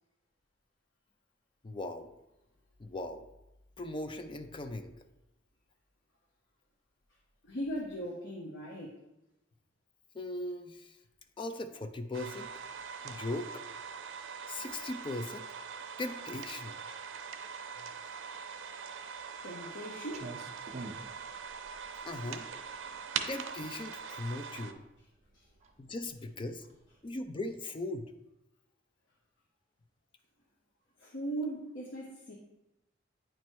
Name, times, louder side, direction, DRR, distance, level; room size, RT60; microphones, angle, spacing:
voice 1, 1.6-2.1 2.8-3.2 3.8-4.9 10.1-11.0 11.4-12.5 13.0-13.6 14.5-15.5 16.0-16.7 22.0-22.5 23.3-24.8 25.8-26.6 27.0-28.1, left 2 dB, 25° left, 8 dB, 0.4 m, -39 dB
voice 2, 7.4-9.0 19.4-20.3 25.3-25.4 31.0-32.4, right 1 dB, 75° left, -2 dB, 0.9 m, -38 dB
sound 1, 12.1-24.7, right 6 dB, 85° right, 0.6 m, -42 dB
Clock, 20.1-27.5, right 2 dB, 35° right, 0.6 m, -50 dB
9.1 x 3.1 x 4.5 m, 0.94 s
head